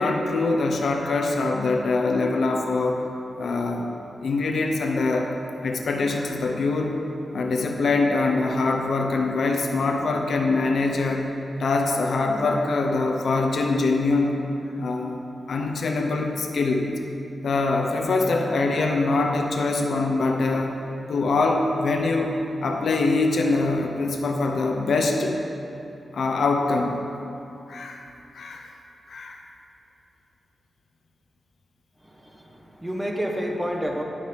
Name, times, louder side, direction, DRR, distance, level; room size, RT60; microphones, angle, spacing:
voice 1, 0.0-3.0 3.4-3.9 4.2-5.4 5.6-7.0 7.3-11.3 11.6-14.4 14.8-15.2 15.5-16.9 17.4-20.8 21.1-22.4 22.6-25.4 26.1-27.0 27.7-28.0 28.3-28.7 29.1-29.4, left 3 dB, 65° left, 2 dB, 0.9 m, -23 dB
voice 2, 32.0-34.0, equal, 10° right, 0 dB, 1.3 m, -29 dB
10.5 x 6.4 x 8.9 m, 2.8 s
wide cardioid pair, 145°, 0 cm